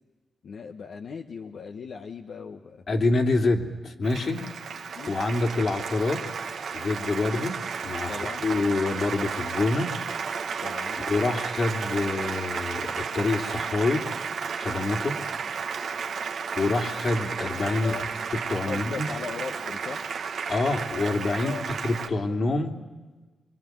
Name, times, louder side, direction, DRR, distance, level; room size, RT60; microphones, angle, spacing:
voice 1, 0.4-2.8 4.3-4.5 4.9-5.1 7.2-7.5 8.1-8.5 10.6-11.0 17.8-18.0 18.7-20.0 21.4-21.7, left 5 dB, 75° left, 4 dB, 1.3 m, -38 dB
voice 2, 2.9-4.4 5.1-6.2 6.7-9.9 10.9-14.1 14.6-15.2 16.6-18.0 18.3-19.1 20.5-22.7, left 3 dB, 60° left, 4 dB, 3.1 m, -26 dB
Applause, 4.0-22.1, right 6 dB, 80° right, 1.9 m, -33 dB
26.5 x 23.5 x 9.5 m, 1.3 s
cardioid pair, 75°, 0 cm